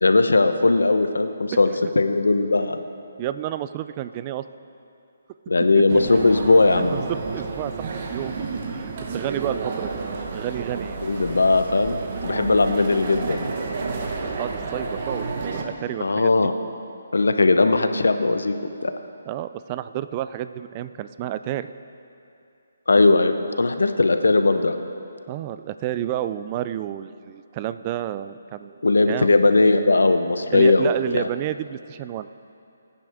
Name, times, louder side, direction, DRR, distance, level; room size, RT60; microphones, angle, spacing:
voice 1, 0.0-2.8 5.5-7.0 11.0-12.0 12.2-13.5 16.0-16.5 17.1-18.5 18.8-18.9 22.9-24.8 28.8-31.2, left 3 dB, 90° left, 8 dB, 0.8 m, -19 dB
voice 2, 3.2-4.5 5.7-5.8 7.1-9.9 10.3-11.1 14.4-16.3 19.3-21.7 25.3-29.3 30.5-32.3, right 12 dB, 25° right, 12 dB, 0.3 m, -30 dB
sound 1, 5.9-15.6, right 4 dB, 40° right, 1.2 m, -31 dB
20.5 x 9.7 x 3.5 m, 2.6 s
hypercardioid pair, 160°, 0 cm